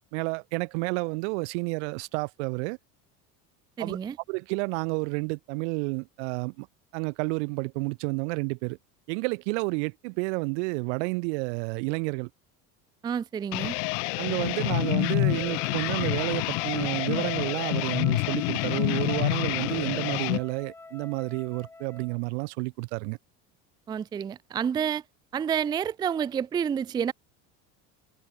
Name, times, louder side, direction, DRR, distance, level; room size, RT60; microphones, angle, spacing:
voice 1, 0.1-2.8 3.8-4.0 4.3-6.7 6.9-8.8 9.1-12.3 14.2-23.2, right 32 dB, 85° right, 3.7 m, -30 dB
voice 2, 3.8-4.2 13.0-13.8 23.9-25.0 25.3-27.1, right 8 dB, 15° right, 0.4 m, -29 dB
sound 1, 13.5-20.4, left 39 dB, 80° left, 1.8 m, -28 dB
Wind instrument woodwind instrument, 14.6-22.2, left 3 dB, 5° left, 1.3 m, -45 dB
cardioid pair, 170°, 33 cm